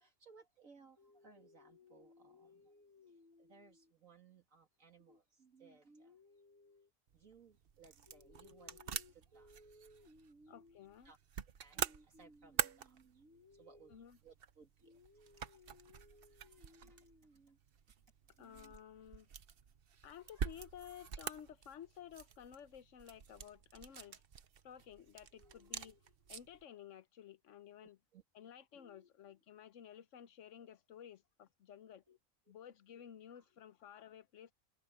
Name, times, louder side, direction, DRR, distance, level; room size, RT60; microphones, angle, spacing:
voice 1, 0.0-10.8 11.0-11.2 11.6-17.6 18.4-18.7 20.3-20.5 25.3-26.0 27.8-28.2 28.7-29.1 32.1-32.2 33.3-33.4, right 1 dB, 75° right, 3.0 m, -62 dB
sound 1, 7.1-26.6, right 7 dB, 50° right, 0.9 m, -46 dB
voice 2, 10.5-11.1 13.9-14.2 18.4-19.3 20.0-24.2 24.6-28.0 28.3-32.0 32.5-34.5, left 9 dB, 65° left, 1.1 m, -54 dB
omnidirectional pair, 1.4 m